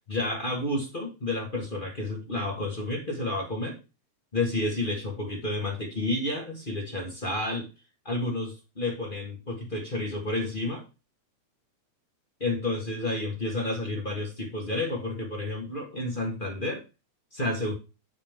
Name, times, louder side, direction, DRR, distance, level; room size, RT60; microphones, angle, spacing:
voice 1, 0.1-3.8 4.3-7.7 8.0-10.8 12.4-16.8 17.3-17.7, left 2 dB, 40° left, 0 dB, 0.7 m, -30 dB
7.8 x 6.6 x 3.5 m, 0.30 s
omnidirectional pair, 3.4 m